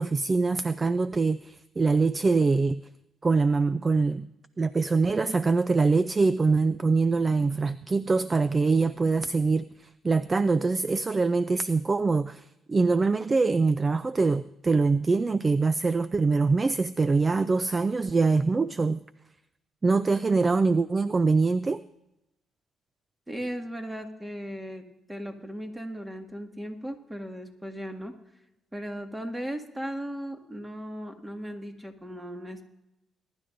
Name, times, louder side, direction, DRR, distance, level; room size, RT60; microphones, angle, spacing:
voice 1, 0.0-2.8 3.2-4.3 4.6-9.6 10.0-19.0 19.8-21.8, right 4 dB, 30° right, 15 dB, 0.4 m, -24 dB
voice 2, 23.3-28.2 28.7-32.6, equal, 10° right, 4 dB, 1.8 m, -37 dB
21.5 x 11.5 x 2.6 m, 0.91 s
cardioid pair, 90°, 0 cm